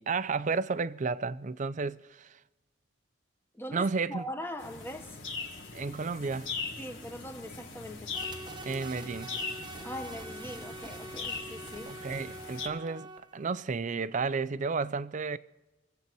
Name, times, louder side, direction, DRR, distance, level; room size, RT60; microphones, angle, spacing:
voice 1, 0.0-2.4 3.7-4.2 5.7-6.5 8.6-9.3 11.9-13.1 13.3-15.4, right 4 dB, 40° right, 0.5 m, -32 dB
voice 2, 3.5-5.2 6.8-8.1 9.8-11.9, left 1 dB, 10° left, 1.2 m, -41 dB
sound 1, 4.6-12.7, left 4 dB, 65° left, 1.7 m, -40 dB
sound 2, 8.1-13.5, right 2 dB, 25° right, 0.9 m, -45 dB
24.5 x 8.2 x 4.6 m
head